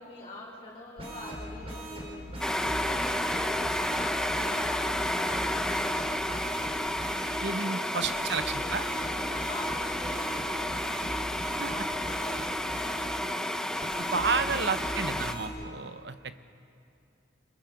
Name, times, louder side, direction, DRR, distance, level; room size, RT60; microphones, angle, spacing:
voice 1, 0.0-2.2 2.7-7.0 7.4-11.2 11.7-15.7, left 2 dB, 30° left, -6 dB, 5.6 m, -44 dB
sound 1, 1.0-7.3 8.0-13.1 13.8-15.5, right 1 dB, 30° right, 4.3 m, -40 dB
sound 2, 2.4-15.3, left 1 dB, 5° left, 0.6 m, -31 dB
voice 2, 7.4-8.8 11.6-11.7 14.0-16.3, right 4 dB, 60° right, 10 dB, 0.8 m, -31 dB
25.5 x 21.5 x 5.2 m, 2.4 s
head